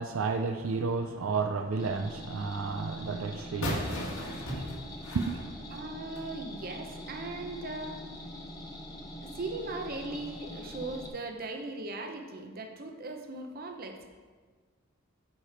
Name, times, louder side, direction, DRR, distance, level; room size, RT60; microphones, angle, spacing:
voice 1, 0.0-4.3 4.5-4.6 5.1-5.4, right 4 dB, 75° right, 6 dB, 0.5 m, -32 dB
sound 1, 1.8-11.1, equal, 15° left, 0.8 m, -44 dB
sound 2, 3.6-6.3, left 1 dB, 85° left, 1.8 m, -37 dB
voice 2, 5.7-8.0 9.2-14.1, right 2 dB, 45° right, 4 dB, 0.8 m, -39 dB
11.0 x 5.0 x 4.3 m, 1.5 s
head